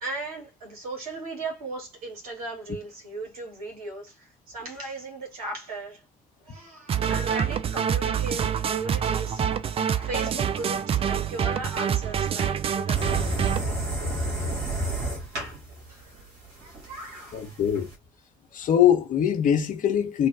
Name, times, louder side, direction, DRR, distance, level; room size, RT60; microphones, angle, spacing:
voice 1, 0.0-6.0 6.4-13.3 13.6-13.8 14.9-15.2 15.9-17.6, right 2 dB, 80° right, 1.2 m, -37 dB
sound 1, 6.9-13.6, right 8 dB, 30° right, 0.4 m, -26 dB
sound 2, 13.0-17.9, right 1 dB, 65° right, 1.7 m, -31 dB
voice 2, 17.3-17.9 18.5-20.3, left 9 dB, 45° left, 0.7 m, -22 dB
3.3 x 2.1 x 3.2 m
figure-of-eight pair, 50°, 19 cm